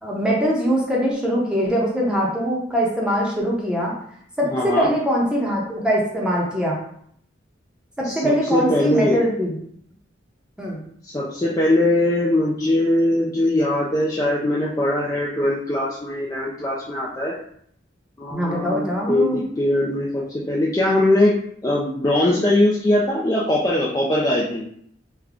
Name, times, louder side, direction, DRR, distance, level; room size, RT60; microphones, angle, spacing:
voice 1, 0.0-3.9 4.4-6.8 8.0-9.5 10.6-10.8 18.3-19.4, equal, 5° right, -4 dB, 0.8 m, -22 dB
voice 2, 4.5-4.9 8.0-9.2 11.0-17.4 18.2-21.3 21.6-24.6, left 1 dB, 20° left, -5 dB, 0.4 m, -21 dB
3.4 x 2.1 x 3.6 m, 0.66 s
head